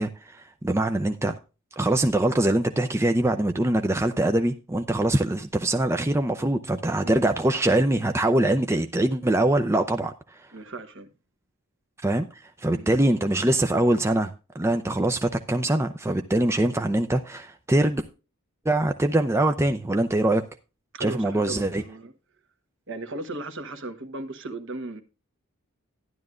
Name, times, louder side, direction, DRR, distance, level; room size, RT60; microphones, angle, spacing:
voice 1, 0.0-1.4 1.8-10.5 12.0-18.0 18.7-20.4 21.0-21.8, right 1 dB, 10° right, 0.5 m, -23 dB
voice 2, 10.5-11.1 12.7-12.9 20.9-22.1 22.9-25.0, right 2 dB, 55° right, 1.2 m, -36 dB
12.5 x 11.0 x 2.5 m
head